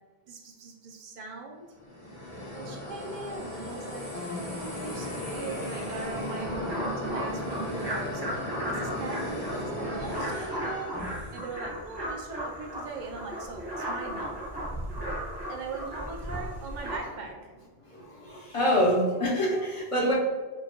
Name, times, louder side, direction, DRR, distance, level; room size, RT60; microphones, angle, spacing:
voice 1, 0.3-1.7 2.5-10.9 11.3-14.4 15.5-17.5, right 3 dB, 55° right, 2 dB, 0.6 m, -40 dB
sound 1, 1.8-11.5, left 1 dB, 75° left, 1.7 m, -36 dB
sound 2, 6.3-17.0, equal, 25° right, 0.8 m, -36 dB
voice 2, 17.8-20.1, equal, 35° left, -4 dB, 0.7 m, -26 dB
4.4 x 2.3 x 2.9 m, 1.3 s
omnidirectional pair, 1.1 m